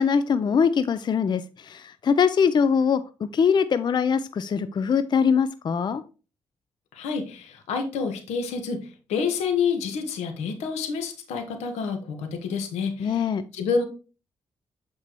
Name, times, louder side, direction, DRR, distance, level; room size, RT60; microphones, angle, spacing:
voice 1, 0.0-3.0 3.3-6.0 13.0-13.4, left 6 dB, 40° left, 12 dB, 0.4 m, -22 dB
voice 2, 6.9-13.8, left 5 dB, 90° left, 6 dB, 1.2 m, -28 dB
8.0 x 4.4 x 3.0 m, 0.35 s
cardioid pair, 70°, 11 cm